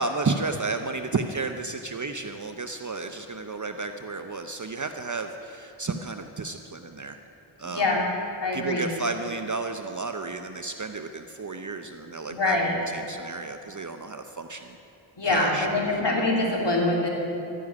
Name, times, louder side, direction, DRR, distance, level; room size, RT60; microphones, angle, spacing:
voice 1, 0.0-7.2 7.6-7.9 8.5-12.6 12.9-14.8 15.2-15.7, right 3 dB, 40° right, 7 dB, 0.8 m, -32 dB
voice 2, 7.6-8.0 8.4-8.9 12.3-12.7 15.2-17.1, left 2 dB, 60° left, -2 dB, 3.4 m, -24 dB
12.5 x 10.0 x 9.7 m, 2.8 s
wide cardioid pair, 60°, 47 cm